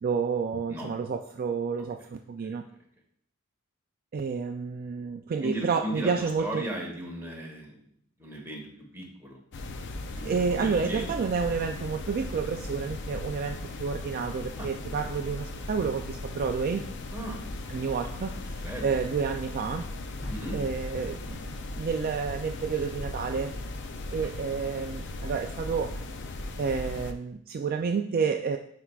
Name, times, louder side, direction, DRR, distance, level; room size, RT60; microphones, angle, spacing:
voice 1, 0.0-2.7 4.1-6.7 10.2-16.9 17.7-19.9 20.5-23.6 24.1-26.0 26.6-28.6, right 5 dB, 45° right, 4 dB, 0.3 m, -30 dB
voice 2, 5.4-7.7 8.2-9.4 10.1-11.1 14.6-14.7 17.1-17.4 18.6-18.9 20.3-20.6, right 1 dB, 10° right, -2 dB, 1.4 m, -36 dB
sound 1, 9.5-27.1, left 2 dB, 55° left, 0.5 m, -37 dB
sound 2, 20.2-22.3, equal, 75° left, 2.4 m, -44 dB
9.6 x 4.6 x 2.4 m, 0.66 s
head